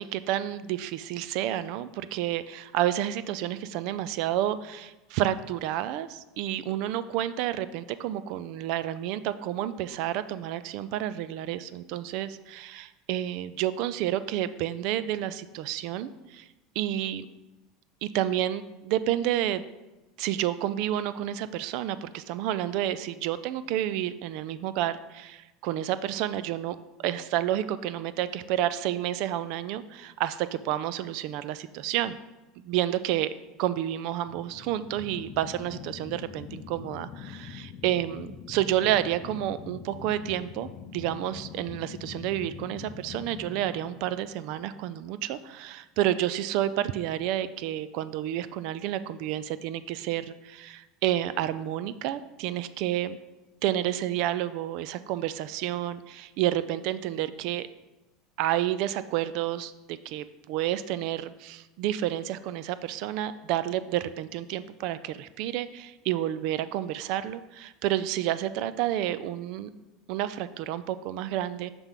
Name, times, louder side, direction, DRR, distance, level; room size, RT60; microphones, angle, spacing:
voice 1, 0.0-16.5 16.8-17.3 18.0-19.6 20.2-32.2 32.6-33.3 33.6-53.2 53.6-57.7 58.4-69.7 70.1-71.7, right 12 dB, 60° right, 14 dB, 0.3 m, -30 dB
sound 1, 34.2-45.2, left 7 dB, 50° left, 0.5 m, -44 dB
6.0 x 3.4 x 5.6 m, 1.1 s
supercardioid pair, 140°, 0 cm